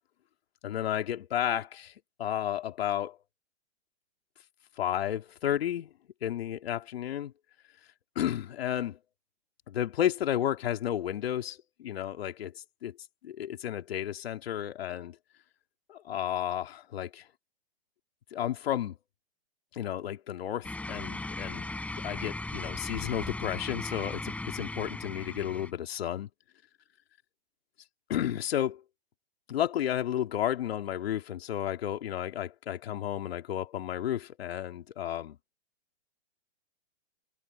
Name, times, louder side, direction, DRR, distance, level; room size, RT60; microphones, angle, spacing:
voice 1, 0.6-1.9 2.2-3.2 4.8-5.9 6.2-7.3 8.1-9.0 9.7-13.0 13.2-15.2 15.9-17.3 18.3-19.0 19.7-26.3 28.1-28.8 29.5-35.4, left 11 dB, 65° left, 2.8 m, -32 dB
sound 1, 20.6-25.7, left 2 dB, 5° left, 7.5 m, -37 dB
hypercardioid pair, 145°, 33 cm